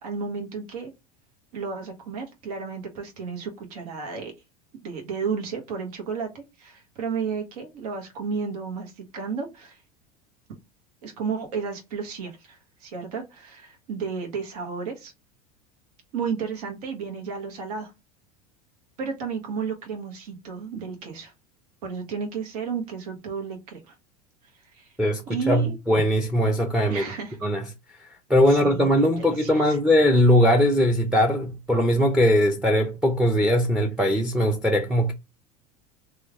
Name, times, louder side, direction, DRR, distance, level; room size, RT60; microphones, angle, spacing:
voice 1, 0.0-0.9 1.5-4.3 4.8-9.8 11.0-15.1 16.1-17.9 19.0-21.3 21.8-23.9 24.7-24.9 25.3-26.0 26.9-27.4 28.5-29.8, right 5 dB, 75° right, 1.1 m, -32 dB
voice 2, 25.0-27.1 27.4-27.7 28.3-35.1, equal, 5° right, 0.5 m, -20 dB
3.1 x 2.4 x 3.5 m
supercardioid pair, 105°, 20 cm